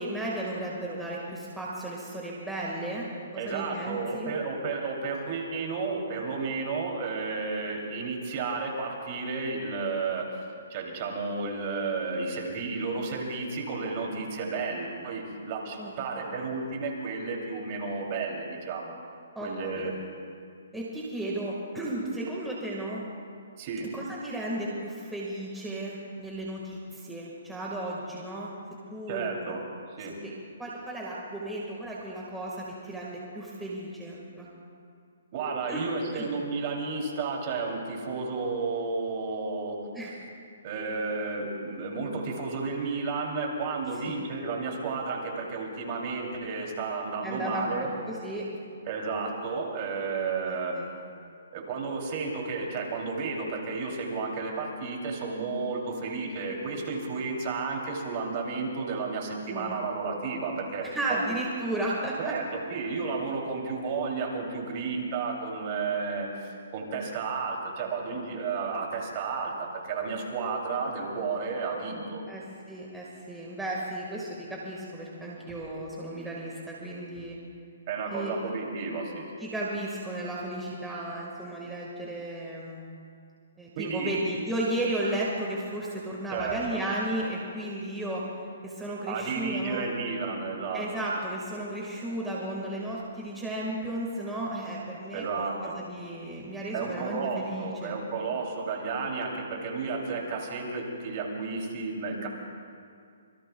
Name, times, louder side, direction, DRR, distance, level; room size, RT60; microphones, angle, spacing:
voice 1, 0.0-4.3 15.8-16.2 19.3-19.9 20.7-23.0 23.9-28.5 28.9-29.6 30.0-30.3 30.6-34.5 35.7-35.8 36.1-36.3 39.9-40.1 44.0-44.1 47.2-48.5 50.4-50.9 59.5-59.8 60.8-62.3 72.3-77.4 78.1-78.3 79.4-82.9 83.6-89.9 90.7-97.9, right 1 dB, 5° right, -5 dB, 1.7 m, -34 dB
voice 2, 3.4-10.4 10.7-18.9 19.4-19.9 23.6-23.9 29.1-29.6 30.0-30.1 35.3-39.7 40.6-47.9 48.9-50.8 51.5-61.2 62.2-72.2 77.9-79.3 83.7-84.1 86.3-86.8 89.1-90.8 95.1-95.8 96.7-102.3, right 4 dB, 35° right, 0 dB, 2.9 m, -32 dB
26.0 x 22.0 x 2.3 m, 2.3 s
hypercardioid pair, 160°, 0 cm